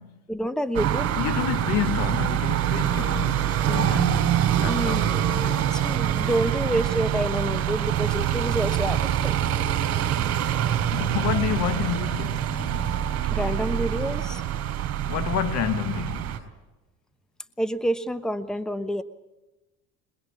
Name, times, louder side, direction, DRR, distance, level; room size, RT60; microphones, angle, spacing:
voice 1, 0.3-1.1 4.7-5.2 5.7-9.4 13.3-14.4 17.6-19.0, equal, ahead, 1.1 m, -28 dB
sound 1, 0.7-16.4, right 10 dB, 55° right, 3.3 m, -25 dB
voice 2, 1.2-5.8 10.9-13.0 15.0-16.4, left 10 dB, 65° left, 1.5 m, -30 dB
22.0 x 21.5 x 8.5 m
cardioid pair, 110°, 30 cm